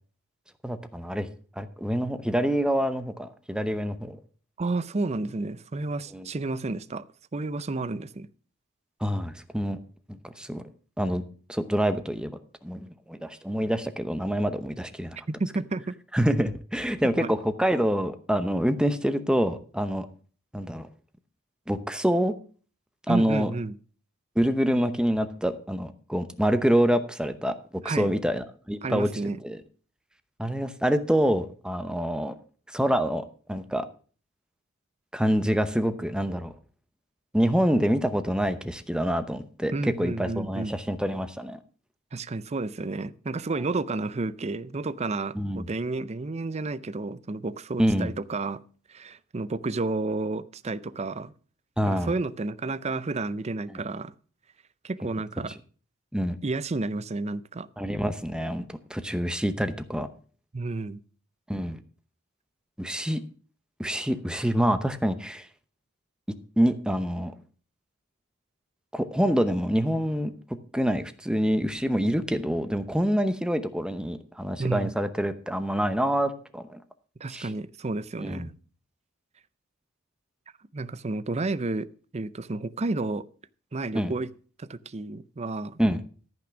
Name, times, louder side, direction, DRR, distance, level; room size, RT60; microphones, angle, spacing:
voice 1, 0.6-1.3 1.6-4.2 6.1-6.3 9.0-9.8 10.1-10.6 11.0-11.2 11.5-12.3 12.6-15.2 16.1-20.1 20.5-20.9 21.7-22.3 23.1-23.5 24.4-27.5 27.8-29.1 29.4-29.6 30.4-32.3 32.7-33.9 35.1-36.5 37.3-41.6 45.3-45.7 47.8-48.1 51.8-52.1 53.7-53.8 56.1-56.4 57.8-60.1 61.5-61.8 62.8-63.2 63.8-65.5 66.6-67.3 68.9-70.3 70.7-76.8 77.3-77.5 78.2-78.5 83.9-84.1 85.8-86.0, equal, 5° right, 10 dB, 0.8 m, -26 dB
voice 2, 4.6-7.1 7.3-8.3 15.4-15.9 17.2-17.3 23.1-23.8 27.8-28.1 28.8-29.4 39.7-40.8 42.1-48.6 48.9-51.3 51.9-54.1 54.8-55.5 56.4-57.7 60.5-61.0 74.6-74.9 77.2-78.5 80.7-81.9 82.1-83.3 83.7-84.3 84.6-85.8, right 3 dB, 30° right, 15 dB, 0.5 m, -31 dB
13.5 x 6.0 x 6.2 m, 0.40 s
head